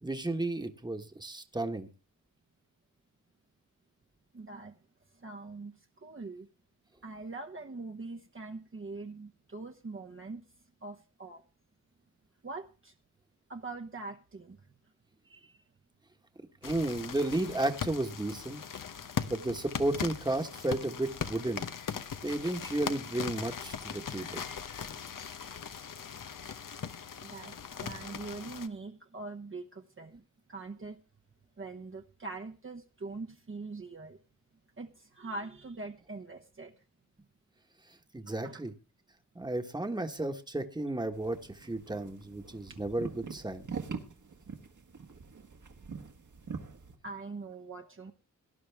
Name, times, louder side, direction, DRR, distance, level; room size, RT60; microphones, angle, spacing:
voice 1, 0.0-1.9 16.6-18.8 19.3-21.6 22.2-24.4 38.1-38.7 39.3-43.7, right 2 dB, 15° right, 7 dB, 1.4 m, -33 dB
voice 2, 4.3-4.8 5.2-6.5 7.0-10.5 10.8-11.4 12.4-12.9 13.5-14.6 15.2-15.6 19.2-19.3 21.6-21.7 27.2-30.2 30.5-31.0 31.6-34.2 34.8-36.7 38.3-38.6 47.0-48.1, right 3 dB, 40° right, 2 dB, 1.1 m, -43 dB
sound 1, 16.6-28.7, left 7 dB, 75° left, 1.0 m, -40 dB
sound 2, 41.1-46.9, right 5 dB, 65° right, 1.8 m, -43 dB
18.0 x 11.0 x 3.5 m, 0.32 s
wide cardioid pair, 85°, 33 cm